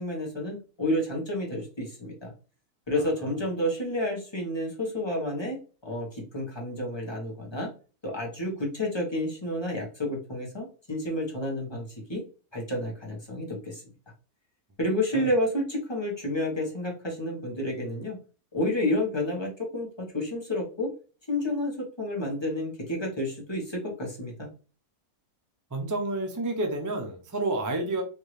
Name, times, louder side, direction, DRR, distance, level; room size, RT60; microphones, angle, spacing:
voice 1, 0.0-2.3 2.9-5.6 5.8-7.7 8.0-12.2 12.5-13.8 14.8-18.2 18.5-20.9 21.3-24.5, left 1 dB, 20° left, -2 dB, 1.1 m, -30 dB
voice 2, 25.7-28.0, right 2 dB, 30° right, 4 dB, 0.3 m, -30 dB
4.5 x 2.7 x 3.1 m, 0.35 s
omnidirectional pair, 1.5 m